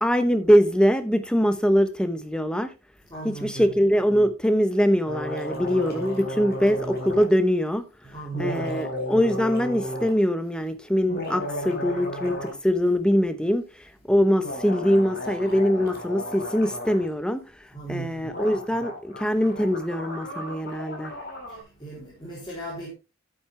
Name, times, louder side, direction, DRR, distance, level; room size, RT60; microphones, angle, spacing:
voice 1, 0.0-2.7 3.2-7.9 8.4-17.4 17.9-21.1, equal, 5° left, 0.9 m, -23 dB
voice 2, 3.1-3.8 8.0-8.8 17.7-18.4 21.5-22.9, right 3 dB, 20° left, 3.5 m, -37 dB
sound 1, 5.1-7.3 8.3-10.1 10.9-12.6 12.9-13.0 14.4-17.1 18.0-18.1 18.3-21.6, equal, 50° left, 3.9 m, -34 dB
9.6 x 8.8 x 3.3 m
head